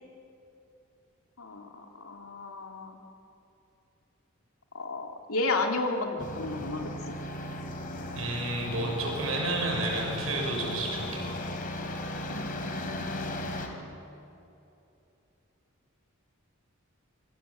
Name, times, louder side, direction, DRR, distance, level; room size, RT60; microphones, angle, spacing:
voice 1, 1.4-3.0 4.7-7.1 12.3-13.7, left 3 dB, 90° left, 2 dB, 3.1 m, -33 dB
sound 1, 6.2-13.7, left 1 dB, 40° left, 3.2 m, -36 dB
voice 2, 8.1-11.3, right 2 dB, 85° right, 1 dB, 5.9 m, -31 dB
25.0 x 24.5 x 7.9 m, 2.9 s
head